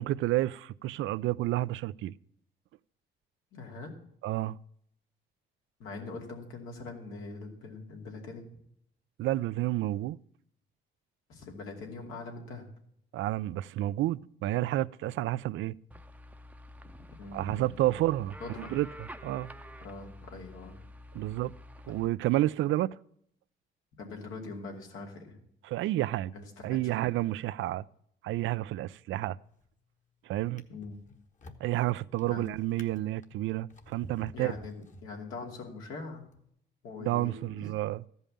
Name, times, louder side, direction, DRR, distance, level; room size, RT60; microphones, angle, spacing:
voice 1, 0.0-2.1 4.2-4.6 9.2-10.2 13.1-15.8 17.3-19.5 21.1-21.5 21.9-23.0 25.6-26.3 26.6-27.8 28.2-29.4 30.3-30.6 31.6-34.5 37.0-38.0, right 15 dB, 75° right, 0.4 m, -30 dB
voice 2, 3.5-3.9 5.8-8.5 11.3-12.7 17.2-17.9 18.4-18.7 19.8-20.8 21.9-22.1 24.0-25.4 26.3-27.1 30.7-31.0 32.3-32.6 34.3-36.3 36.8-37.7, left 3 dB, 85° left, 2.6 m, -43 dB
sound 1, 15.9-22.1, left 1 dB, 5° right, 0.7 m, -49 dB
Drawer open or close, 29.4-29.8 30.4-35.6 36.3-36.4, left 1 dB, 40° left, 1.3 m, -53 dB
14.0 x 5.5 x 8.5 m
cardioid pair, 90°, 20 cm